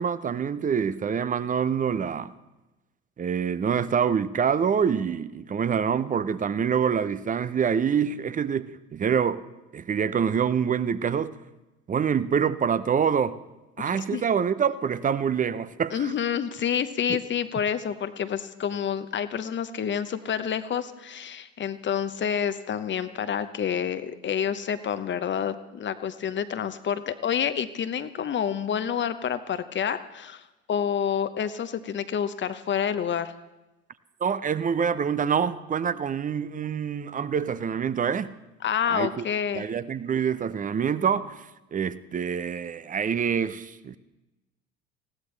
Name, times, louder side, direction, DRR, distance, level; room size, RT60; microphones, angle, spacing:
voice 1, 0.0-2.3 3.2-9.4 9.7-11.3 11.9-13.4 13.8-16.1 17.1-17.2 34.2-38.3 38.9-39.2 39.5-41.5 41.7-44.0, right 7 dB, 20° right, 0.6 m, -26 dB
voice 2, 13.9-14.2 15.9-33.3 38.6-39.7, left 8 dB, 30° left, 0.9 m, -28 dB
20.0 x 16.0 x 3.3 m
figure-of-eight pair, 70°, 38 cm